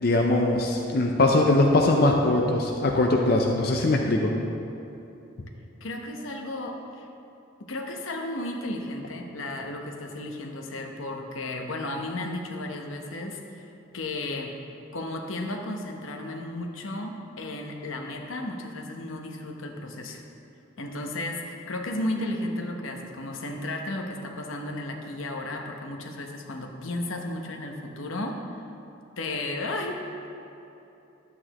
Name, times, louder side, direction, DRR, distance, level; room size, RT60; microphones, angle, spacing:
voice 1, 0.0-4.3, left 2 dB, 50° left, 1 dB, 0.6 m, -21 dB
voice 2, 5.8-7.1 7.6-13.7 13.9-14.6 14.9-20.2 20.8-28.4 29.2-30.0, left 1 dB, 85° left, 2 dB, 0.9 m, -34 dB
11.0 x 8.6 x 3.0 m, 2.9 s
head